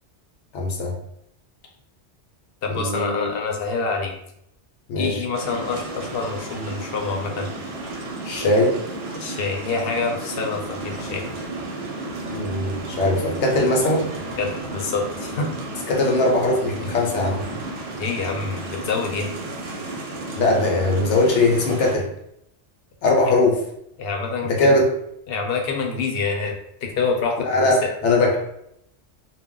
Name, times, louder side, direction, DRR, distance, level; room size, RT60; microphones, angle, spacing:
voice 1, 0.5-1.0 2.7-3.3 4.9-5.2 8.2-8.8 12.3-14.1 15.9-17.5 20.4-22.1 23.0-23.6 24.5-24.9 27.5-28.4, left 2 dB, 90° left, 0 dB, 0.9 m, -20 dB
voice 2, 2.6-4.1 5.0-7.5 9.1-11.2 14.4-15.5 18.0-19.3 24.0-24.8 25.3-27.7, left 4 dB, 65° left, 2 dB, 0.7 m, -26 dB
sound 1, 5.3-22.0, right 2 dB, 90° right, 0.9 m, -33 dB
2.3 x 2.1 x 3.6 m, 0.76 s
omnidirectional pair, 1.2 m